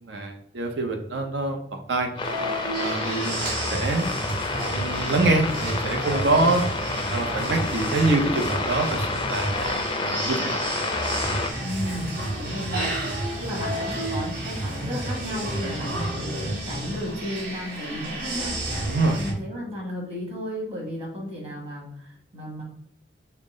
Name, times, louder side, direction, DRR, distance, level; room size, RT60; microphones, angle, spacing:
voice 1, 0.0-1.6 1.9-2.1 2.8-4.1 4.7-6.6 7.1-9.5 10.0-10.6 18.9-19.2, right 2 dB, 80° right, 4 dB, 0.7 m, -25 dB
sound 1, 2.2-11.5, left 3 dB, 25° left, 0.4 m, -30 dB
sound 2, 2.2-19.3, right 1 dB, 55° right, 1.3 m, -31 dB
voice 2, 11.6-18.9 19.2-22.6, equal, 35° right, -3 dB, 1.7 m, -34 dB
5.8 x 2.1 x 3.6 m, 0.66 s
head